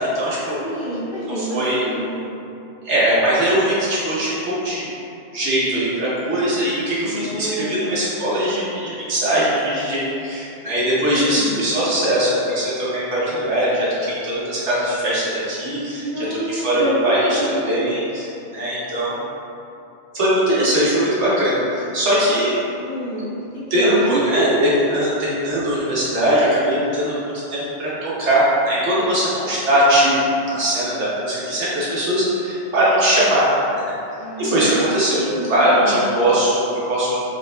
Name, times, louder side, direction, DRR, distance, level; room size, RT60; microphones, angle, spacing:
voice 1, 0.0-0.6 1.4-1.8 2.8-4.8 5.3-17.4 17.7-19.2 20.1-22.5 23.7-33.5 33.7-33.9 34.4-35.2 35.5-37.2, right 1 dB, 85° right, -8 dB, 1.3 m, -20 dB
voice 2, 0.6-2.3 7.0-8.0 11.1-11.6 16.0-18.0 22.8-23.4 23.7-24.6 34.2-36.1, equal, 50° left, -12 dB, 1.4 m, -27 dB
4.9 x 2.9 x 2.4 m, 2.8 s
omnidirectional pair, 1.2 m